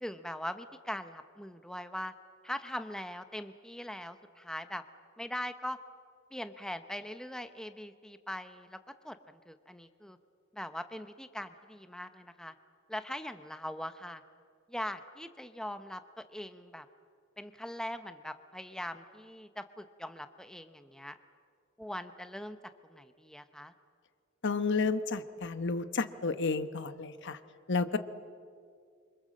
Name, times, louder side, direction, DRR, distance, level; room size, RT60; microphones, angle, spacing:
voice 1, 0.0-2.1 2.4-4.8 5.2-5.8 6.3-8.8 9.0-10.2 10.5-12.5 12.9-14.2 14.7-16.9 17.4-21.2 21.8-22.6 22.9-23.7, left 1 dB, 5° left, 9 dB, 0.8 m, -41 dB
voice 2, 24.4-27.4 27.7-28.0, left 4 dB, 60° left, 11 dB, 1.1 m, -31 dB
27.0 x 25.0 x 7.6 m, 2.1 s
head